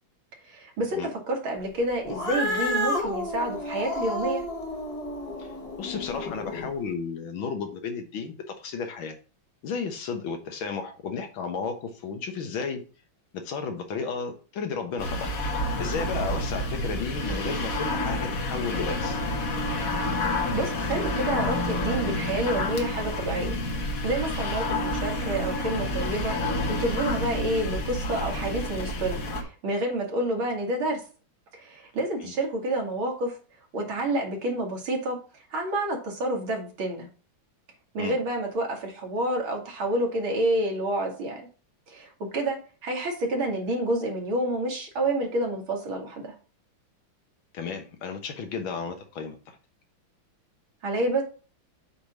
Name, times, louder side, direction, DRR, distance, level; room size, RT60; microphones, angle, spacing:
voice 1, 0.4-4.4 20.5-23.6 24.0-26.3 26.7-31.0 31.5-33.4 33.7-35.2 35.5-37.1 37.9-41.4 41.9-46.4 50.8-51.2, right 1 dB, 85° right, 0 dB, 2.8 m, -29 dB
Cat, 2.0-6.7, left 1 dB, 20° left, 1.1 m, -31 dB
voice 2, 5.8-9.2 9.6-12.8 13.3-15.3 15.8-19.2 32.2-32.3 38.0-38.2 47.5-49.4, left 5 dB, 80° left, 6 dB, 2.0 m, -33 dB
sound 1, 15.0-29.4, left 1 dB, 50° left, 1.5 m, -29 dB
8.0 x 3.4 x 6.0 m, 0.37 s
omnidirectional pair, 2.2 m